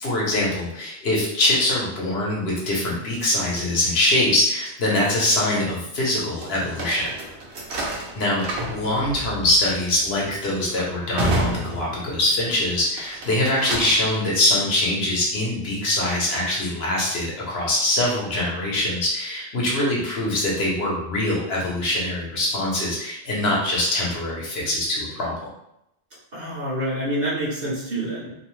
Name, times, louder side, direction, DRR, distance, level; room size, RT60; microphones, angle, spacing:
voice 1, 0.0-7.1 8.1-25.3, left 1 dB, 65° left, -4 dB, 1.0 m, -23 dB
sound 1, 6.4-12.4 12.9-14.1, right 1 dB, 75° right, 0.9 m, -30 dB
voice 2, 26.3-28.3, right 1 dB, 45° right, -6 dB, 0.8 m, -27 dB
2.7 x 2.0 x 3.0 m, 0.80 s
omnidirectional pair, 1.1 m